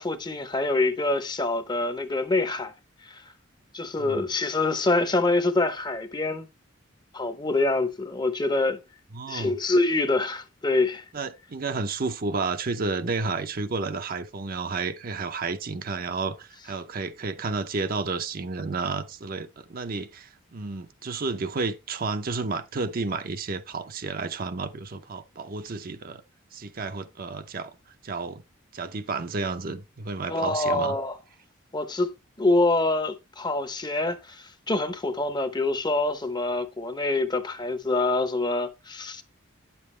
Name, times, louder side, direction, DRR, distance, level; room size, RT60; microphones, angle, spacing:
voice 1, 0.0-2.7 3.0-3.3 3.7-6.5 7.1-8.8 9.3-11.1 30.3-31.2 31.7-39.2, left 2 dB, 20° left, 0.7 m, -25 dB
voice 2, 9.1-9.5 11.1-26.2 26.5-27.7 28.0-28.4 28.7-30.9, right 4 dB, 45° right, 0.6 m, -31 dB
9.3 x 7.0 x 3.2 m
head